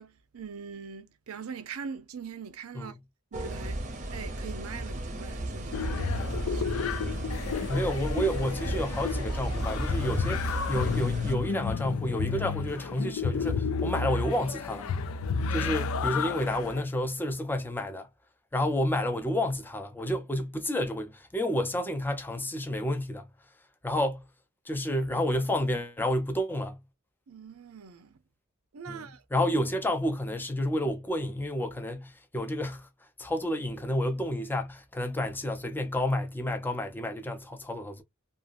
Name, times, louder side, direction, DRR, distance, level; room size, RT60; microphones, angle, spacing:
voice 1, 0.0-2.9 3.3-3.8 4.1-7.4 15.3-15.7 27.3-28.2 28.7-29.2, right 6 dB, 85° right, 0.6 m, -43 dB
sound 1, 3.3-11.3, right 1 dB, 35° right, 0.7 m, -34 dB
sound 2, 5.7-16.8, left 5 dB, 70° left, 0.4 m, -32 dB
voice 2, 7.7-14.9 15.5-18.1 18.5-23.3 23.8-24.2 24.7-26.8 28.9-29.0 29.3-32.9 33.2-38.0, left 1 dB, 10° left, 0.5 m, -30 dB
2.7 x 2.4 x 2.4 m
head